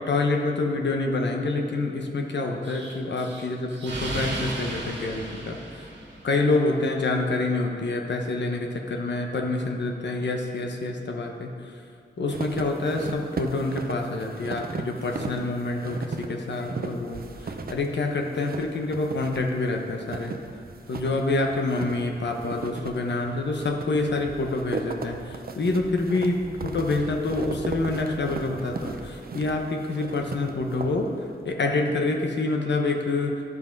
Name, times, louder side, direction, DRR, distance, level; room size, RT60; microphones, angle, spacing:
voice 1, 0.0-5.6 6.2-11.5 12.2-17.2 17.7-20.3 20.9-25.2 25.5-31.1 31.4-33.3, left 2 dB, 75° left, 2 dB, 1.1 m, -27 dB
Explosion, 2.6-6.5, right 2 dB, 80° right, 1.7 m, -35 dB
sound 1, 12.3-31.5, right 4 dB, 55° right, 0.7 m, -37 dB
12.0 x 5.6 x 5.3 m, 2.5 s
cardioid pair, 65°, 18 cm